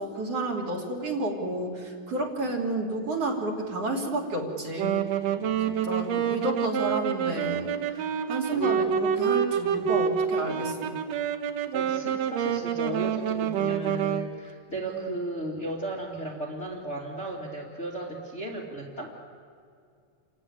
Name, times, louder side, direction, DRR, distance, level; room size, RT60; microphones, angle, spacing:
voice 1, 0.0-5.0 5.7-10.9 14.8-15.1, right 1 dB, 45° right, -2 dB, 4.0 m, -31 dB
Wind instrument woodwind instrument, 4.8-14.3, right 8 dB, 70° right, 1.7 m, -27 dB
voice 2, 5.4-5.7 6.0-6.4 7.9-8.9 9.6-10.0 11.7-19.2, right 1 dB, 25° left, -3 dB, 2.1 m, -36 dB
29.0 x 15.5 x 9.8 m, 2.3 s
omnidirectional pair, 4.2 m